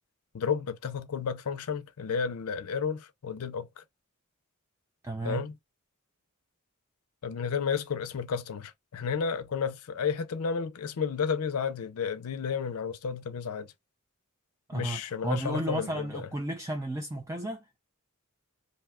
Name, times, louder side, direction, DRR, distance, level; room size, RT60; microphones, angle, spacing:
voice 1, 0.3-3.8 5.2-5.5 7.2-13.7 14.7-16.3, left 6 dB, 80° left, 0.5 m, -32 dB
voice 2, 5.0-5.4 14.7-17.8, right 2 dB, 15° right, 0.3 m, -33 dB
2.6 x 2.2 x 3.5 m
head